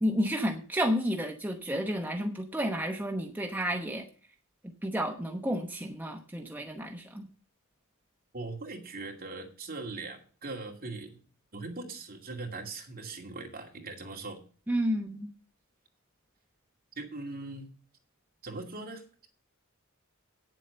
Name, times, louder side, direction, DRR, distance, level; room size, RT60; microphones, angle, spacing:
voice 1, 0.0-4.0 4.8-7.3 14.7-15.3, equal, 10° right, 2 dB, 0.9 m, -31 dB
voice 2, 8.3-11.2 11.5-14.4 17.0-17.7 18.4-19.3, right 3 dB, 45° right, 1 dB, 2.4 m, -40 dB
9.2 x 7.7 x 6.8 m, 0.40 s
head